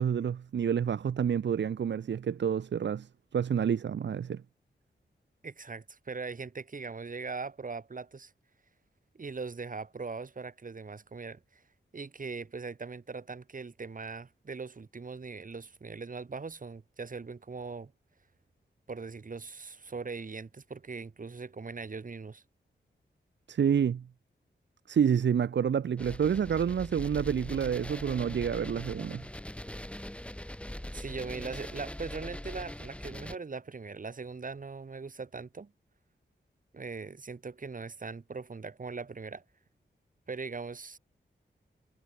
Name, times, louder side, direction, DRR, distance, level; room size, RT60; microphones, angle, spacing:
voice 1, 0.0-4.4 23.5-24.0 24.9-29.2, right 8 dB, 70° right, 0.8 m, -28 dB
voice 2, 5.4-8.3 9.1-11.6 11.9-17.9 18.9-22.4 30.9-35.7 36.7-39.4 40.3-41.0, right 4 dB, 45° right, 6.7 m, -40 dB
sound 1, 26.0-33.3, left 1 dB, 5° left, 6.0 m, -41 dB
wide cardioid pair, 140°, 19 cm